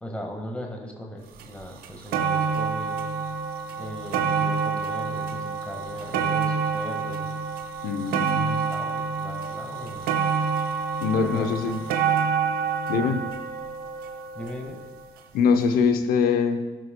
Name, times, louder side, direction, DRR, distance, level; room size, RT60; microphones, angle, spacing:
voice 1, 0.0-3.0 3.8-7.3 8.4-10.1 11.1-11.8 12.9-13.2 14.3-14.8, left 1 dB, 5° left, 1 dB, 1.6 m, -38 dB
sound 1, 1.4-1.5 1.8-15.0 15.8-15.9, right 6 dB, 70° right, 0.6 m, -27 dB
voice 2, 7.8-8.6 11.0-11.8 12.9-13.2 15.3-16.6, left 6 dB, 70° left, 7 dB, 0.7 m, -23 dB
14.5 x 6.2 x 2.2 m, 1.2 s
hypercardioid pair, 45°, 16 cm